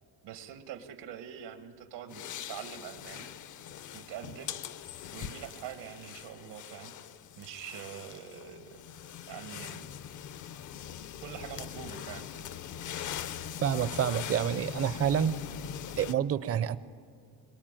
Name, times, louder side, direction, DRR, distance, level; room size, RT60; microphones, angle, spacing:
voice 1, 0.2-3.3 3.9-6.9 7.4-8.8 9.3-9.9 11.2-12.3, right 9 dB, 90° right, 7 dB, 1.8 m, -44 dB
sound 1, 2.1-16.1, left 9 dB, 50° left, 0.6 m, -42 dB
voice 2, 13.6-15.4 16.0-16.8, right 9 dB, 35° right, 15 dB, 0.5 m, -28 dB
23.0 x 19.5 x 9.0 m, 2.2 s
cardioid pair, 175°, 40 cm